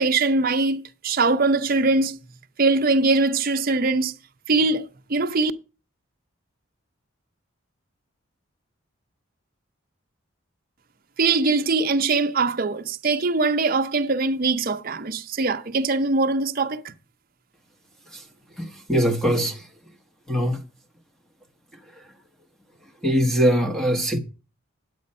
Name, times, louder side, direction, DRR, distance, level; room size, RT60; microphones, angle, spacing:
voice 1, 0.0-2.2 2.6-4.1 4.5-5.5 11.2-16.9, right 3 dB, 45° right, 0.7 m, -22 dB
voice 2, 18.6-19.7 20.3-20.6 22.0-22.1 23.0-24.2, equal, 5° left, 0.9 m, -22 dB
9.5 x 8.6 x 5.4 m
head